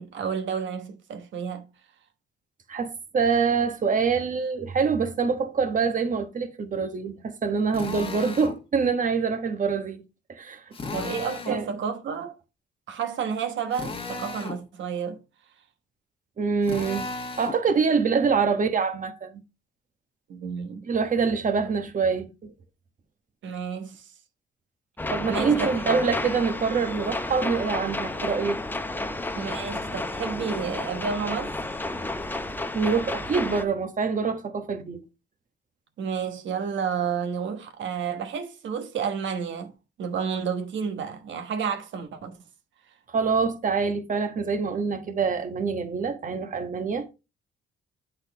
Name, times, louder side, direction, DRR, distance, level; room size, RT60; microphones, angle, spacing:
voice 1, 0.0-1.7 10.9-12.4 12.9-15.2 20.3-20.9 23.4-24.1 25.3-25.7 29.4-31.5 36.0-39.7 40.0-42.4, right 6 dB, 70° right, 1.1 m, -31 dB
voice 2, 2.7-10.0 10.3-10.6 11.5-11.7 16.4-17.1 17.4-19.4 20.9-22.5 25.1-28.6 32.7-35.0 43.1-47.1, right 5 dB, 40° right, 1.2 m, -25 dB
Drill, 7.7-8.6 10.7-11.6 13.7-14.6 16.6-17.6, left 4 dB, 25° left, 1.3 m, -35 dB
sound 1, 25.0-33.6, left 2 dB, 10° left, 0.6 m, -31 dB
8.0 x 4.1 x 3.4 m
cardioid pair, 90°, 20 cm